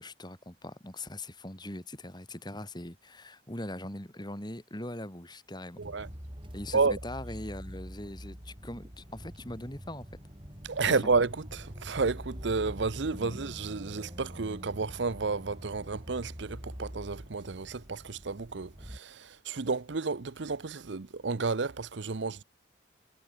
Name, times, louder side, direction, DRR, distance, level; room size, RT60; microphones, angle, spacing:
voice 1, 0.0-5.8 6.5-10.1 10.8-11.1 13.1-13.4, left 1 dB, 20° left, 3.0 m, -41 dB
sound 1, 5.8-19.0, equal, 25° right, 5.7 m, -45 dB
voice 2, 5.8-6.1 6.7-7.0 10.6-22.4, right 4 dB, 65° right, 0.7 m, -31 dB
head